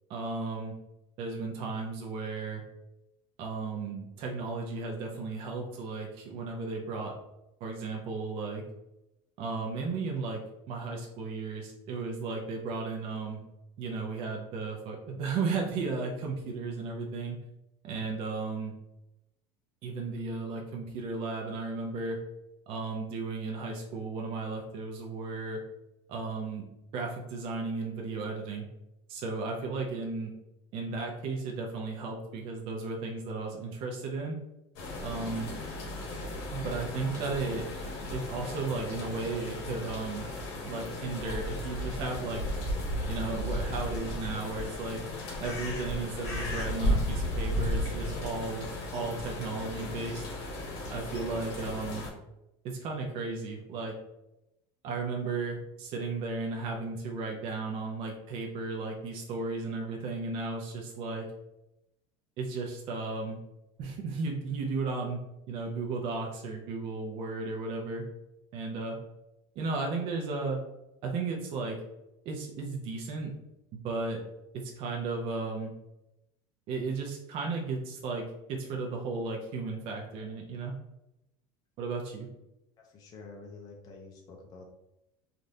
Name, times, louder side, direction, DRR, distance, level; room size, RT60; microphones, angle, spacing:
voice 1, 0.1-0.7 1.2-2.6 3.4-7.1 7.6-8.6 9.4-10.4 10.7-13.4 13.8-17.4 17.8-18.7 19.8-22.2 22.7-25.6 26.1-26.6 26.9-28.7 29.1-30.3 30.7-34.4 35.0-35.5 36.5-37.8 38.1-40.3 40.6-42.4 43.1-45.0 45.4-50.2 50.9-52.0 52.6-53.9 54.8-61.3 62.4-63.4 63.8-65.2 65.5-68.0 68.5-69.0 69.6-70.6 71.0-71.8 72.2-73.3 73.7-74.2 74.8-75.7 76.7-80.7 81.8-82.3, right 3 dB, 45° right, 0 dB, 0.5 m, -34 dB
sound 1, 34.8-52.1, left 1 dB, 65° left, 1.0 m, -35 dB
voice 2, 82.8-84.7, left 3 dB, 30° left, 0 dB, 0.5 m, -48 dB
3.2 x 2.5 x 2.6 m, 0.89 s
cardioid pair, 155°, 13 cm